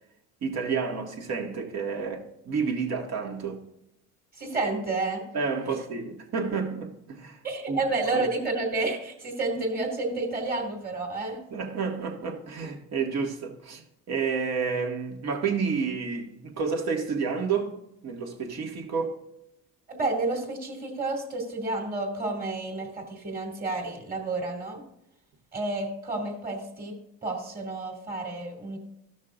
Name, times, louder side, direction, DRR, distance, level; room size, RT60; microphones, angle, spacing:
voice 1, 0.4-3.6 5.3-7.4 7.7-7.8 8.1-8.3 11.5-13.8 14.1-17.8 18.0-19.2, right 5 dB, 55° right, 1.9 m, -30 dB
voice 2, 4.4-5.2 7.4-11.4 19.9-24.8 25.5-26.9 27.2-28.8, right 2 dB, 25° right, 2.5 m, -30 dB
14.0 x 6.3 x 2.5 m
cardioid pair, 105°, 32 cm